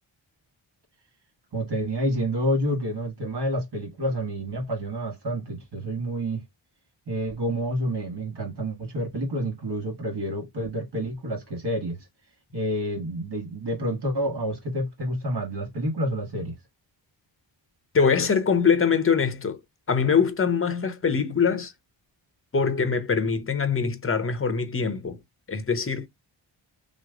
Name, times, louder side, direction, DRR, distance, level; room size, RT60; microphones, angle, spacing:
voice 1, 1.5-6.4 7.1-12.1 12.5-16.6, equal, 55° right, 1.5 m, -29 dB
voice 2, 17.9-19.6 19.9-21.7 22.5-25.2 25.5-26.1, left 6 dB, 30° left, 0.8 m, -23 dB
3.1 x 2.0 x 3.5 m
cardioid pair, 55°, 47 cm